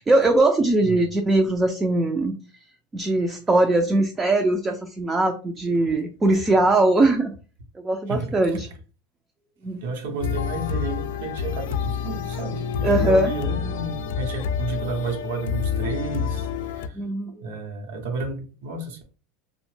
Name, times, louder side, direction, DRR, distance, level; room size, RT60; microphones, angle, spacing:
voice 1, 0.1-2.3 2.9-7.3 7.8-8.7 9.6-9.8 12.8-13.3 17.0-17.3, right 2 dB, 15° right, 0.3 m, -20 dB
voice 2, 8.1-8.6 9.8-19.0, right 4 dB, 85° right, 0.7 m, -32 dB
sound 1, 10.2-16.9, left 7 dB, 80° left, 0.3 m, -28 dB
2.8 x 2.1 x 3.1 m
supercardioid pair, 140°, 0 cm